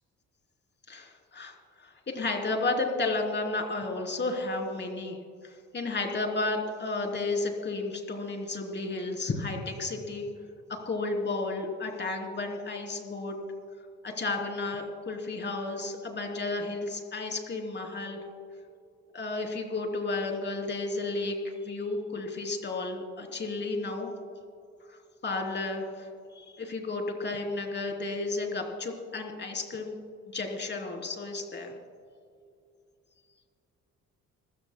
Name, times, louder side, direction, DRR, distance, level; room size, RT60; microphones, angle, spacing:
voice 1, 0.9-5.2 5.4-10.2 10.8-13.4 14.0-18.2 19.1-24.1 24.9-26.1 26.4-30.0 30.3-31.7, left 3 dB, 35° left, 2 dB, 3.3 m, -32 dB
26.5 x 16.0 x 2.2 m, 2.4 s
cardioid pair, 90°, 30 cm